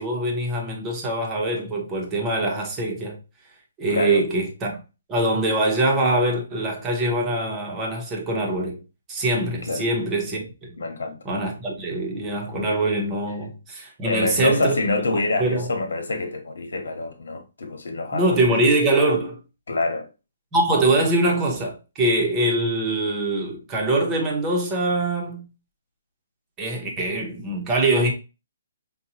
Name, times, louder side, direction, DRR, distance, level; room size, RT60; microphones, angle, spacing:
voice 1, 0.0-3.2 3.8-4.8 5.1-8.8 9.1-10.7 11.2-14.8 15.4-15.7 18.1-19.4 20.5-25.4 26.6-28.1, right 2 dB, 15° right, 0.8 m, -23 dB
voice 2, 3.9-4.2 9.7-9.8 10.8-11.2 14.1-18.5 19.7-20.1, left 2 dB, 80° left, 1.2 m, -26 dB
5.3 x 2.3 x 2.8 m
hypercardioid pair, 170°, 0 cm